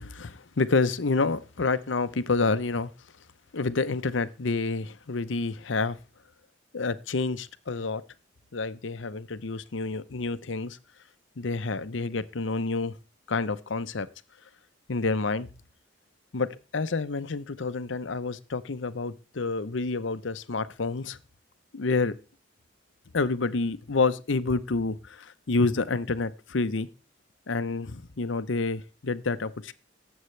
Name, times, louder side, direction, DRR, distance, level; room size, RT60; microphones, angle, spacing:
voice 1, 0.0-2.9 3.5-6.0 6.7-8.0 8.5-10.8 11.4-12.9 13.3-14.1 14.9-15.5 16.3-21.2 21.7-22.1 23.1-26.9 27.5-29.7, left 3 dB, 75° left, 0.8 m, -28 dB
19.0 x 8.0 x 3.3 m
head